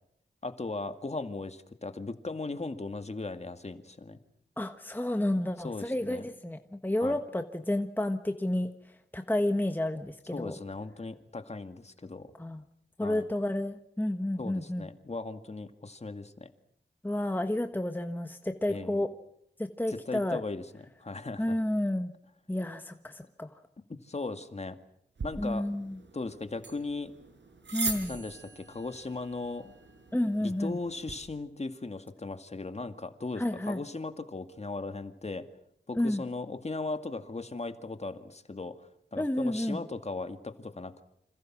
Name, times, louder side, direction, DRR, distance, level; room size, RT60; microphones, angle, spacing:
voice 1, 0.4-4.2 5.6-6.2 7.0-7.2 10.3-12.3 13.0-13.2 14.4-16.5 18.7-19.0 19.9-21.6 23.9-24.8 25.2-25.7 26.1-27.1 28.1-29.7 30.4-35.5 35.9-38.8 39.1-41.0, left 3 dB, 35° left, 8 dB, 2.2 m, -38 dB
voice 2, 4.6-8.7 9.1-10.6 12.4-12.6 13.0-14.9 17.0-19.1 19.6-20.4 21.4-22.1 22.5-23.5 25.4-26.0 27.7-28.2 30.1-30.8 33.4-33.8 35.9-36.2 39.2-39.8, left 1 dB, 10° left, 6 dB, 1.4 m, -30 dB
sound 1, 25.2-31.2, right 4 dB, 80° right, 5.5 m, -41 dB
28.5 x 27.0 x 6.2 m, 0.73 s
wide cardioid pair, 85°, 18 cm